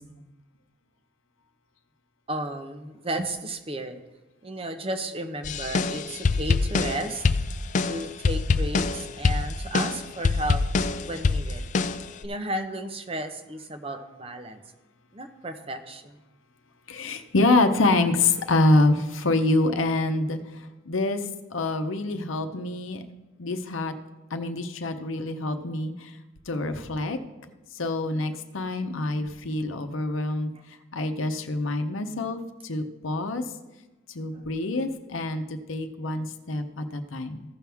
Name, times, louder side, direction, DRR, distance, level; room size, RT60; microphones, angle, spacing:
voice 1, 2.3-4.0 4.4-7.2 7.8-10.6 11.0-11.6 12.2-14.6 15.1-16.2 30.5-30.6 34.3-34.4, right 1 dB, 30° right, 7 dB, 0.7 m, -33 dB
sound 1, 5.4-12.3, left 4 dB, 40° left, 0.3 m, -25 dB
voice 2, 16.9-21.2 21.5-23.0 23.4-23.9 24.3-26.1 26.5-27.2 27.7-30.5 30.9-33.4 34.1-37.4, left 2 dB, 85° left, 8 dB, 0.8 m, -26 dB
15.0 x 6.0 x 3.5 m, 1.1 s
head